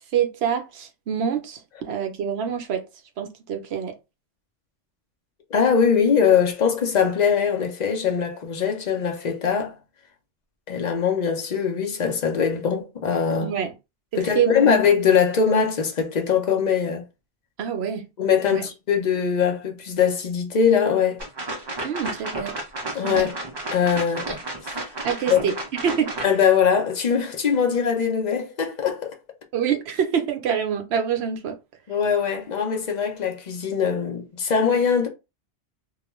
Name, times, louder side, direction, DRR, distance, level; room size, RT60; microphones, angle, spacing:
voice 1, 0.1-2.8 3.2-3.9 13.4-13.7 14.1-14.8 17.6-18.1 18.5-18.6 21.8-22.6 23.0-23.3 25.0-25.5 25.8-26.1 29.5-31.6, right 8 dB, 65° right, 0.8 m, -26 dB
voice 2, 5.5-9.8 10.7-13.5 14.1-17.0 18.2-21.2 22.9-23.3 23.7-24.9 25.3-25.4 26.2-29.1 31.9-35.1, left 7 dB, 50° left, 0.6 m, -22 dB
sound 1, 21.2-26.3, right 2 dB, 35° right, 0.4 m, -32 dB
2.3 x 2.2 x 3.0 m
omnidirectional pair, 1.2 m